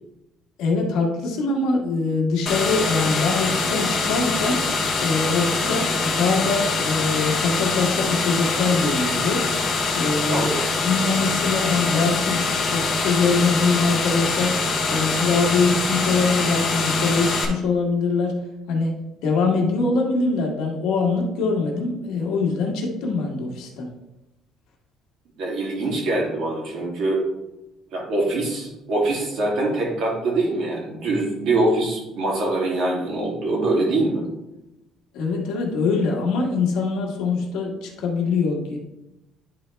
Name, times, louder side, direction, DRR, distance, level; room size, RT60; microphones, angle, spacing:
voice 1, 0.6-4.6 5.0-9.5 9.9-10.5 10.8-14.6 14.9-18.4 18.7-18.9 19.2-23.9 35.1-38.8, left 4 dB, 80° left, 0 dB, 1.6 m, -23 dB
sound 1, 2.5-17.5, left 3 dB, 40° left, 1.2 m, -24 dB
voice 2, 10.3-10.7 25.4-27.2 27.9-34.2, right 2 dB, 65° right, -3 dB, 2.6 m, -23 dB
10.0 x 4.2 x 3.4 m, 0.94 s
cardioid pair, 140°, 0 cm